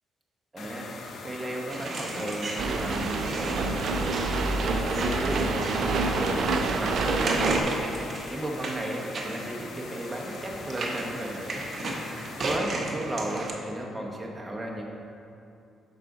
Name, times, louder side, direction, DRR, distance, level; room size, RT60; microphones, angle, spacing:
voice 1, 0.5-0.9 1.2-4.2 4.6-6.4 6.8-7.7 8.1-11.7 12.4-14.9, right 1 dB, 15° right, -1 dB, 1.0 m, -34 dB
sound 1, 0.6-12.6, left 3 dB, 60° left, 0.6 m, -42 dB
sound 2, 1.7-13.5, right 2 dB, 45° right, 0.8 m, -35 dB
sound 3, 2.6-7.6, right 3 dB, 65° right, 0.4 m, -27 dB
6.6 x 4.8 x 3.8 m, 2.7 s
cardioid pair, 90°, 0 cm